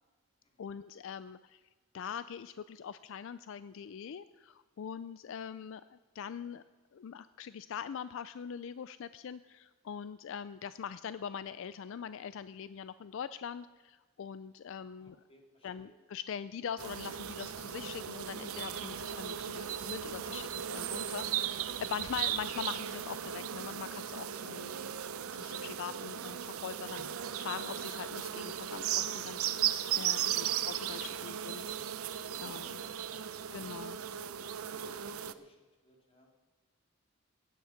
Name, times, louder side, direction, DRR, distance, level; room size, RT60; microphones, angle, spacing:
voice 1, 0.6-1.6 1.9-6.6 6.9-15.2 15.6-24.8 25.3-27.1 27.4-29.4 29.9-31.6 32.4-32.8 33.5-34.0, left 7 dB, 65° left, 14 dB, 0.4 m, -42 dB
voice 2, 15.0-15.9 30.4-30.6 31.1-31.6 32.8-35.6 35.8-36.3, equal, 25° left, 1 dB, 2.6 m, -62 dB
sound 1, 16.8-35.3, right 10 dB, 90° right, 0.6 m, -37 dB
16.5 x 10.5 x 5.8 m, 1.3 s
head